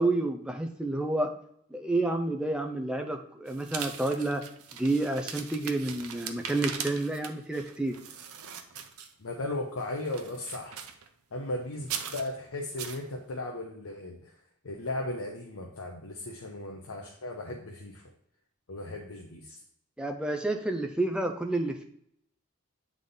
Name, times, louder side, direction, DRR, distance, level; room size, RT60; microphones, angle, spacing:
voice 1, 0.0-1.3 1.7-4.4 4.8-8.0 20.0-21.8, right 2 dB, 5° right, 4 dB, 0.5 m, -29 dB
sound 1, 3.4-9.4 9.8-11.1 11.8-12.3 12.8-13.0, right 7 dB, 80° right, 0.6 m, -40 dB
voice 2, 9.2-10.8 11.3-14.3 14.6-18.0 18.7-19.6, left 2 dB, 75° left, 0 dB, 0.8 m, -36 dB
8.1 x 3.6 x 3.8 m, 0.71 s
head